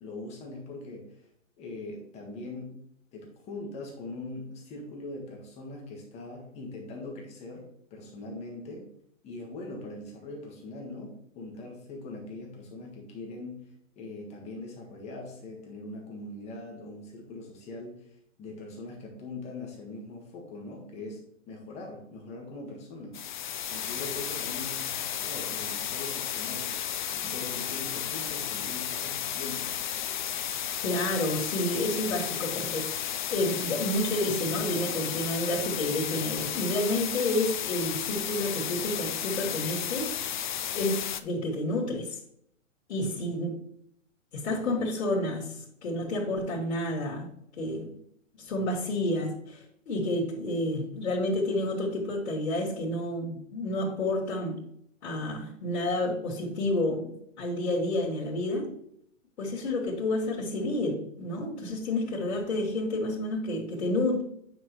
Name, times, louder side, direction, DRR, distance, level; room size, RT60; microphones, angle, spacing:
voice 1, 0.0-1.2 1.6-2.7 3.1-8.8 9.2-13.7 13.9-23.1 23.7-24.9 25.2-26.7 27.1-29.7, left 2 dB, 15° left, 0 dB, 1.5 m, -41 dB
sound 1, 23.1-41.2, left 10 dB, 40° left, 0.5 m, -33 dB
voice 2, 30.8-33.0 33.3-40.1 40.7-42.2 42.9-43.5 44.3-47.3 47.6-47.9 48.4-54.6 55.0-57.1 57.4-58.7 59.4-64.2, left 1 dB, 55° left, -4 dB, 2.7 m, -30 dB
9.2 x 6.0 x 3.1 m, 0.71 s
hypercardioid pair, 150°, 39 cm